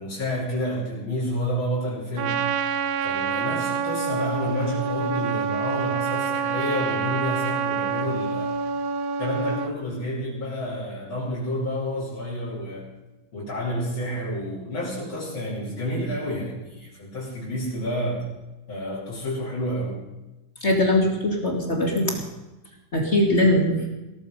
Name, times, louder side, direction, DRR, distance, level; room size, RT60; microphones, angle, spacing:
voice 1, 0.0-2.4 3.0-8.5 9.2-12.9 13.3-18.3 18.7-20.0, equal, 90° left, -8 dB, 4.5 m, -29 dB
Trumpet, 2.2-9.8, right 6 dB, 60° right, 1.1 m, -27 dB
voice 2, 20.6-22.1 22.9-23.8, left 1 dB, 35° left, 1 dB, 2.5 m, -21 dB
18.0 x 14.0 x 5.4 m, 1.0 s
omnidirectional pair, 2.1 m